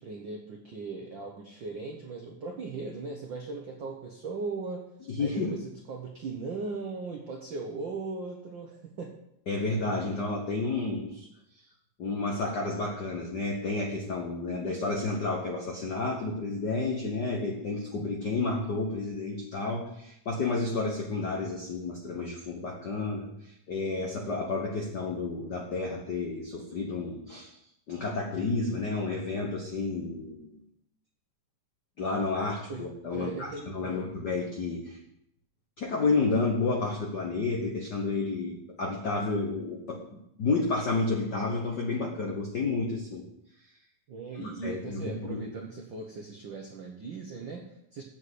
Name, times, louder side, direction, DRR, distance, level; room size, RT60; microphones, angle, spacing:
voice 1, 0.0-4.9 5.2-9.1 32.7-34.1 44.1-48.0, right 4 dB, 90° right, 2 dB, 1.0 m, -38 dB
voice 2, 5.1-5.6 9.5-11.3 12.0-23.3 23.7-27.5 27.9-30.6 32.0-35.0 35.8-43.2 44.4-45.4, left 3 dB, 60° left, 0 dB, 1.1 m, -31 dB
8.1 x 7.7 x 8.0 m, 0.78 s
omnidirectional pair, 3.8 m